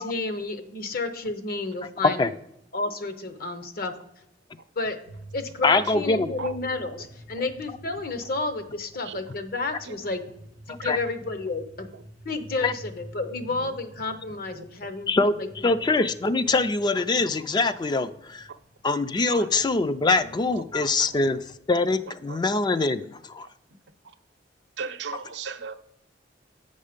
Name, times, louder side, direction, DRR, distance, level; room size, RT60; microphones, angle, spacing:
voice 1, 0.0-2.3 2.7-3.9 4.8-5.0 5.3-10.2 10.7-11.9 12.2-15.1 15.4-15.8, left 3 dB, 55° left, 9 dB, 0.8 m, -31 dB
sound 1, 5.1-21.8, right 1 dB, 75° left, 3.2 m, -48 dB
voice 2, 5.6-6.3 10.7-11.0 12.6-12.7 15.1-15.4 15.6-18.5 18.8-21.4 21.7-23.5, left 3 dB, 25° left, 12 dB, 0.3 m, -23 dB
voice 3, 10.7-11.0 11.9-12.0 13.5-13.8 14.3-14.7 15.9-16.0 19.2-19.5 20.5-20.6 21.1-21.3 22.3-22.4 23.4-23.5 24.0-24.1 24.8-25.8, right 5 dB, 85° right, 9 dB, 0.6 m, -38 dB
8.6 x 5.4 x 5.1 m, 0.80 s
head